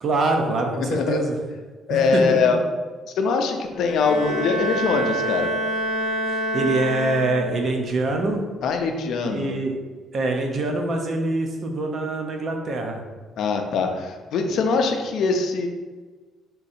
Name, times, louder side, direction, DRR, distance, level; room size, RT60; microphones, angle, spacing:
voice 1, 0.0-1.4 1.9-2.6 6.3-8.4 9.3-9.8 10.1-13.0, right 2 dB, 45° right, 3 dB, 0.6 m, -24 dB
voice 2, 0.8-1.2 1.9-2.6 3.1-5.5 8.6-9.5 13.4-15.7, left 4 dB, 65° left, 4 dB, 0.5 m, -22 dB
Bowed string instrument, 3.7-7.8, right 1 dB, 35° left, 0.9 m, -27 dB
3.7 x 2.7 x 4.2 m, 1.3 s
cardioid pair, 130°, 0 cm